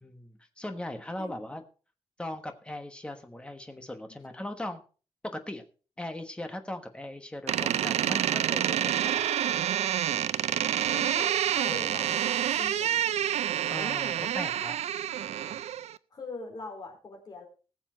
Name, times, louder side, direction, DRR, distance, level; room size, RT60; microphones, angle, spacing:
voice 1, 0.0-1.6 2.2-4.8 5.2-5.6 6.0-9.2 13.7-14.8, left 1 dB, 10° left, 6 dB, 1.3 m, -39 dB
Door, 7.5-16.0, right 10 dB, 90° right, 0.5 m, -28 dB
voice 2, 10.8-13.0 16.1-17.4, left 3 dB, 40° left, 1 dB, 4.2 m, -42 dB
19.5 x 7.2 x 4.0 m, 0.36 s
wide cardioid pair, 170°, 11 cm